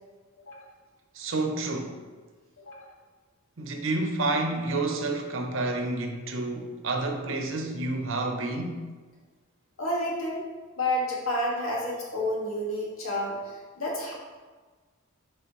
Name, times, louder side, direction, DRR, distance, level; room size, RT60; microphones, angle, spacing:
voice 1, 1.1-2.0 3.6-8.8, right 2 dB, 70° right, 4 dB, 0.8 m, -29 dB
voice 2, 9.8-10.4 10.8-14.1, left 1 dB, 90° left, -4 dB, 1.8 m, -30 dB
8.1 x 4.8 x 3.0 m, 1.4 s
head